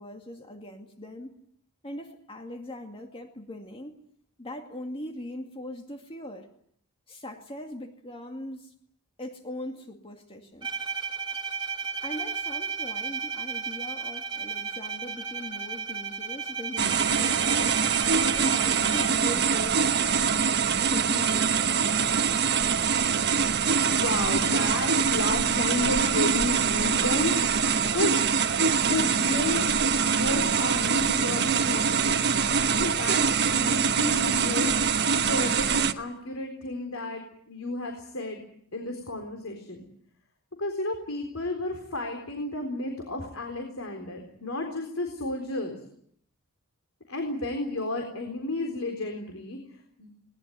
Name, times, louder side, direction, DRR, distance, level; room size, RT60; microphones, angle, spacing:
voice 1, 0.0-1.4 1.8-4.0 4.4-6.5 7.1-8.7 9.2-10.7 12.0-17.8 18.3-20.4 20.8-21.8, left 1 dB, 25° left, 4 dB, 2.2 m, -40 dB
Bowed string instrument, 10.6-19.4, right 5 dB, 25° right, 3.7 m, -34 dB
sound 1, 16.8-35.9, right 6 dB, 55° right, 1.2 m, -24 dB
voice 2, 23.9-27.4 27.9-28.2 28.9-29.7 30.0-32.5 32.7-38.4 38.7-39.9 40.6-45.8 47.1-49.6 50.0-50.1, left 2 dB, 75° left, 4 dB, 4.0 m, -32 dB
22.0 x 20.0 x 9.3 m, 0.67 s
head